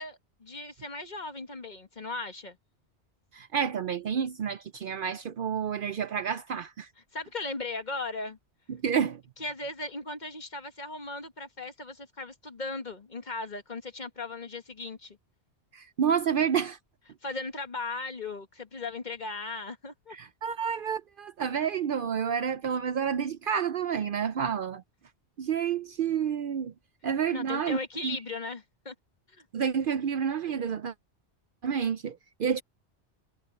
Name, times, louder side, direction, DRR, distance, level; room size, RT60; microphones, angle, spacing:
voice 1, 0.0-2.6 7.1-8.4 9.4-15.2 17.2-20.2 27.3-28.9 29.3-29.5, left 3 dB, 40° left, 1.8 m, -37 dB
voice 2, 3.3-6.9 8.7-9.2 15.7-16.8 20.1-24.8 25.4-26.7 27.0-28.2 29.5-30.9 31.6-32.6, right 7 dB, 60° right, 0.7 m, -29 dB
omnidirectional pair, 1.1 m